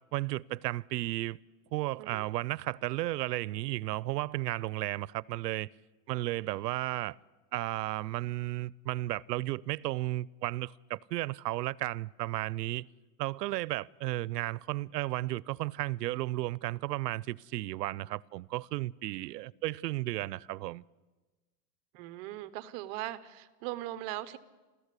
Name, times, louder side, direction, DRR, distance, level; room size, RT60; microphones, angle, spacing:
voice 1, 0.0-1.4 1.7-5.7 6.1-7.2 7.5-12.9 13.2-20.8, right 17 dB, 85° right, 0.7 m, -34 dB
voice 2, 2.0-2.3 21.9-24.4, right 15 dB, 25° right, 0.6 m, -39 dB
29.0 x 14.0 x 8.3 m
supercardioid pair, 165°, 48 cm